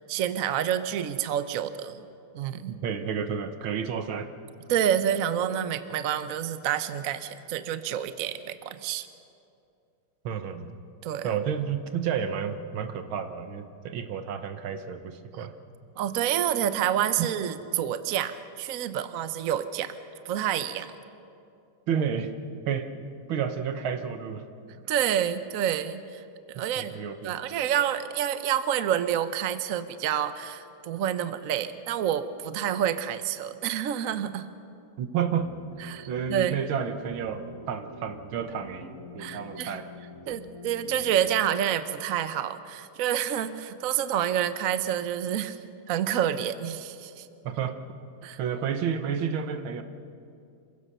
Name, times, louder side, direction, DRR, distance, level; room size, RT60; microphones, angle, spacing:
voice 1, 0.0-1.9 2.3-2.8 4.7-9.1 11.0-11.3 16.0-19.9 20.2-20.9 24.9-26.2 26.5-27.0 27.2-34.4 35.9-36.6 39.2-39.8 40.3-45.6 45.9-47.3 48.2-48.4, right 10 dB, 60° right, 11 dB, 0.9 m, -28 dB
voice 2, 2.7-4.3 10.2-10.7 11.2-15.5 17.2-17.3 21.9-22.3 22.7-22.9 23.3-24.5 26.6-27.4 35.0-35.5 35.8-39.9 47.4-47.8 48.4-49.8, right 7 dB, 75° right, 9 dB, 1.9 m, -31 dB
sound 1, 35.4-41.2, left 2 dB, 45° left, 4.0 m, -46 dB
27.0 x 16.5 x 6.7 m, 2.5 s
omnidirectional pair, 2.3 m